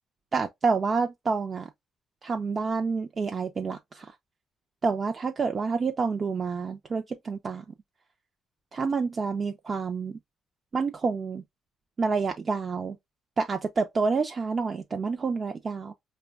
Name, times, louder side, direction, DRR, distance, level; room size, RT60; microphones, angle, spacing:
voice 1, 0.3-1.7 2.2-4.1 4.8-7.6 8.7-10.2 10.7-11.4 12.0-13.0 13.4-15.9, right 4 dB, 40° right, 0.5 m, -28 dB
5.0 x 2.2 x 2.3 m
cardioid pair, 90°, 0 cm